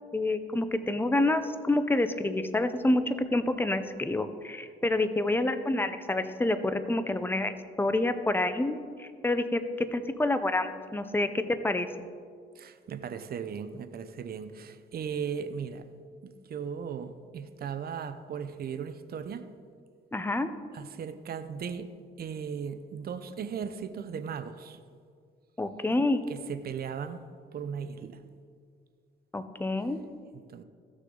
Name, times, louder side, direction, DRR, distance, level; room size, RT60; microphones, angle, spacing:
voice 1, 0.1-11.9 20.1-20.5 25.6-26.2 29.3-30.0, left 2 dB, 10° left, 10 dB, 0.7 m, -28 dB
voice 2, 12.6-15.8 16.2-19.5 20.7-21.9 22.2-24.8 26.3-27.2 27.5-28.2 30.5-30.6, right 7 dB, 50° right, 10 dB, 0.7 m, -37 dB
15.0 x 6.5 x 3.9 m, 2.1 s
cardioid pair, 90°, 20 cm